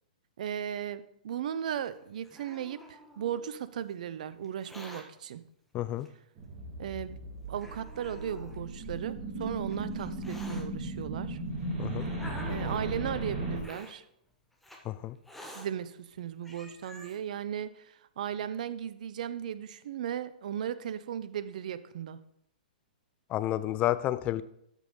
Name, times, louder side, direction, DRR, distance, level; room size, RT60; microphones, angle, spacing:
voice 1, 0.4-5.4 6.8-7.2 7.5-11.4 12.5-14.0 15.5-22.2, right 9 dB, 60° right, 14 dB, 0.7 m, -36 dB
Hiss, 1.9-3.5 4.4-5.0 6.0-6.1 6.9-7.0 7.6-8.6 9.4-10.6 11.5-13.0 13.6-13.9 14.6-14.8 15.2-15.7 16.2-16.3 16.4-17.2, left 1 dB, 5° left, 1.4 m, -48 dB
voice 2, 5.7-6.1 11.8-12.1 14.8-15.2 23.3-24.4, left 14 dB, 30° left, 15 dB, 0.5 m, -30 dB
sound 1, 6.4-13.6, right 2 dB, 30° right, 3.5 m, -36 dB
13.0 x 5.6 x 3.9 m, 0.75 s
hypercardioid pair, 120°, 5 cm